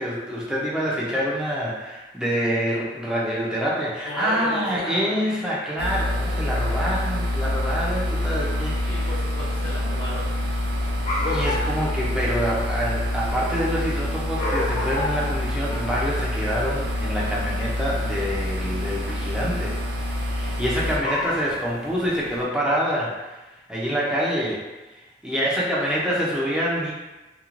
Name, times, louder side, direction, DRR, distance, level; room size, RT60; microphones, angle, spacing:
voice 1, 0.0-9.1 11.2-19.8 20.0-23.4 23.7-24.6 25.2-26.9, equal, 5° right, -6 dB, 0.4 m, -26 dB
voice 2, 4.0-5.2 8.9-10.2, left 1 dB, 80° left, -6 dB, 0.9 m, -34 dB
sound 1, 5.8-21.0, left 1 dB, 65° right, 0.4 m, -26 dB
sound 2, 10.2-22.4, left 2 dB, 40° left, 0.6 m, -34 dB
2.9 x 2.1 x 2.4 m, 1.1 s
head